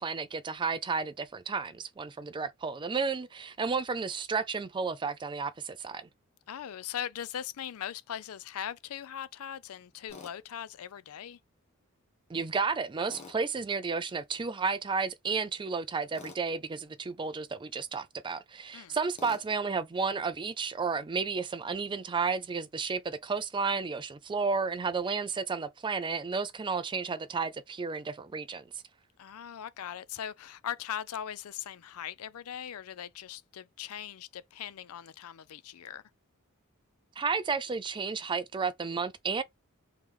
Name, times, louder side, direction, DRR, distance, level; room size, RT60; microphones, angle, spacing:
voice 1, 0.0-6.1 12.3-28.7 37.2-39.4, right 5 dB, 20° right, 0.4 m, -32 dB
voice 2, 6.5-11.4 18.7-19.0 29.2-36.0, left 9 dB, 80° left, 0.4 m, -40 dB
Tools, 10.1-10.4 13.1-13.4 16.1-16.4 19.2-19.5, left 3 dB, 30° left, 1.1 m, -47 dB
3.5 x 3.2 x 3.0 m
head